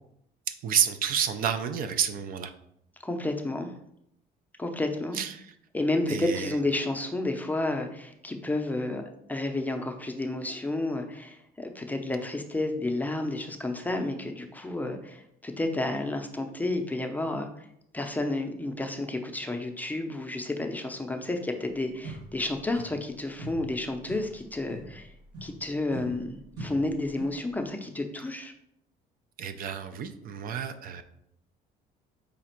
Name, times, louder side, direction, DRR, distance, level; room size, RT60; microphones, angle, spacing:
voice 1, 0.6-2.5 5.1-5.5 6.1-6.6 29.4-31.0, right 8 dB, 60° right, 8 dB, 0.4 m, -29 dB
voice 2, 3.0-3.7 4.6-5.2 5.7-17.7 17.9-25.1 25.4-28.5, left 2 dB, 10° left, 4 dB, 0.5 m, -31 dB
sound 1, 21.7-21.8 22.0-23.1 23.4-27.5, right 1 dB, 90° right, 1.3 m, -43 dB
5.0 x 2.4 x 4.3 m, 0.74 s
cardioid pair, 110°, 17 cm